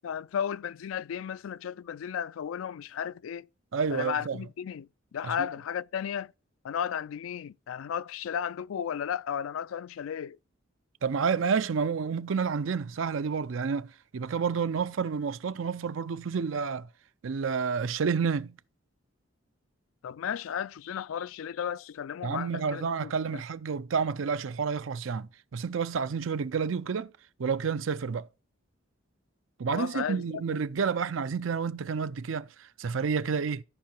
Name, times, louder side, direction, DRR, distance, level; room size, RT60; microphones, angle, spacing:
voice 1, 0.0-3.5 3.9-6.3 6.6-10.4 20.0-23.4 29.7-30.2, left 8 dB, 85° left, 0.3 m, -34 dB
voice 2, 3.7-4.4 5.2-5.5 11.0-16.9 17.2-18.6 22.2-27.1 27.4-28.3 29.6-33.6, right 5 dB, 75° right, 0.5 m, -30 dB
13.5 x 4.7 x 4.4 m
head